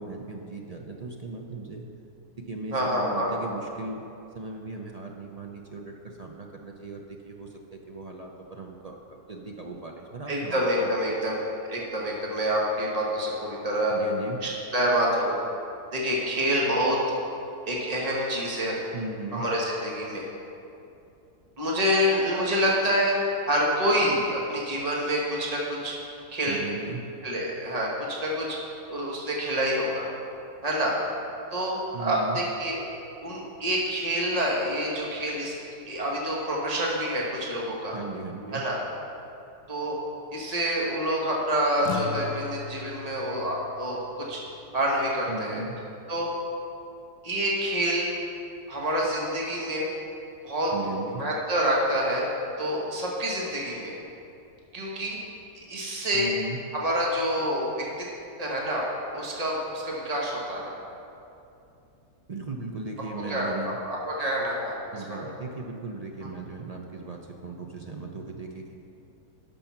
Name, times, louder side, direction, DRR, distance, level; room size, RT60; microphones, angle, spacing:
voice 1, 0.0-1.9 2.4-4.0 4.3-10.9 13.9-14.4 18.9-19.4 26.5-27.0 31.9-32.4 37.9-38.6 45.3-45.8 50.7-51.2 56.1-56.6 62.3-63.8 64.9-68.7, right 3 dB, 55° right, 1 dB, 0.4 m, -37 dB
voice 2, 2.7-3.3 10.3-11.4 11.7-13.9 14.4-15.4 15.9-17.0 17.7-18.8 19.3-20.2 21.6-23.2 23.5-25.9 26.3-26.6 27.2-27.9 28.2-28.4 28.9-30.0 30.6-31.0 31.5-32.8 33.2-35.5 35.8-38.0 38.5-38.8 39.7-40.0 40.3-44.0 44.3-44.4 44.7-45.6 46.1-46.3 47.2-48.1 48.7-49.9 50.4-50.7 51.2-52.3 52.6-54.0 54.7-55.2 55.7-56.3 56.7-57.6 58.4-58.8 59.1-60.7 63.3-63.5 63.8-65.4, equal, 25° right, -4 dB, 1.6 m, -27 dB
sound 1, 41.8-46.5, left 7 dB, 90° left, 1.2 m, -39 dB
12.5 x 5.5 x 5.8 m, 2.7 s
omnidirectional pair, 1.6 m